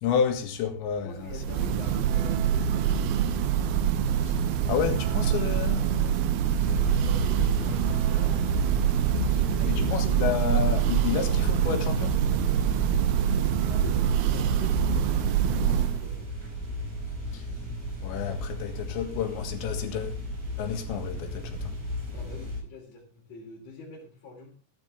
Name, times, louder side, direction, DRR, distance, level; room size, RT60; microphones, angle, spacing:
voice 1, 0.0-1.3 4.3-4.4 4.7-5.9 9.7-12.5 17.3-17.5 18.0-20.2 20.6-21.7, left 7 dB, 70° left, 3.9 m, -30 dB
voice 2, 1.0-3.3 5.5-6.3 6.8-8.6 9.2-10.2 13.5-16.3 22.1-24.5, left 3 dB, 35° left, 3.9 m, -45 dB
Church bell, 1.2-16.2, right 9 dB, 75° right, 2.4 m, -25 dB
sound 1, 6.6-22.6, left 1 dB, 40° right, 7.4 m, -35 dB
17.5 x 12.0 x 3.4 m
omnidirectional pair, 5.6 m